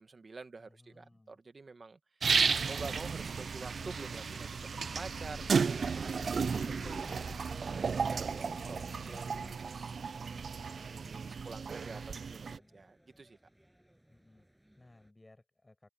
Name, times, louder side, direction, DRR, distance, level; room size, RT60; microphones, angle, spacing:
voice 1, 0.0-2.3 2.7-10.0 10.9-12.5 12.7-13.4, right 3 dB, 55° right, 1.6 m, -48 dB
voice 2, 0.6-1.4 10.3-12.9 14.1-15.9, left 2 dB, 25° left, 7.4 m, -63 dB
sound 1, 2.2-9.6, left 4 dB, 60° left, 1.9 m, -52 dB
sound 2, 2.2-12.6, right 5 dB, 85° right, 0.4 m, -34 dB
sound 3, 4.4-15.1, equal, 10° right, 7.9 m, -67 dB
cardioid pair, 60°, 0 cm